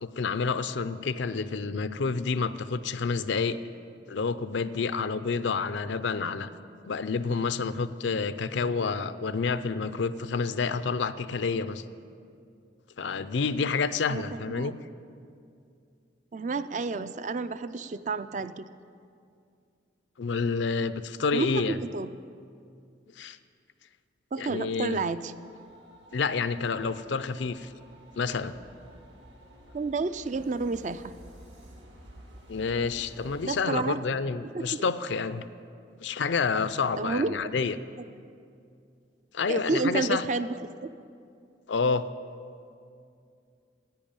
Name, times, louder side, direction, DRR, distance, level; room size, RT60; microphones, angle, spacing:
voice 1, 0.0-3.6 4.1-6.5 6.8-11.8 13.0-14.8 20.2-21.8 23.2-23.4 24.4-25.0 26.1-27.7 28.2-28.5 32.5-35.4 36.0-37.8 39.3-40.3 41.7-42.0, left 4 dB, 75° left, 13 dB, 0.5 m, -29 dB
voice 2, 16.3-18.7 21.3-22.1 24.3-25.3 29.7-31.1 33.4-34.0 34.5-34.8 37.0-37.7 39.5-40.9, right 3 dB, 40° right, 13 dB, 0.3 m, -30 dB
sound 1, 25.2-33.6, right 1 dB, 80° right, 2.3 m, -52 dB
10.5 x 9.1 x 8.9 m, 2.4 s
head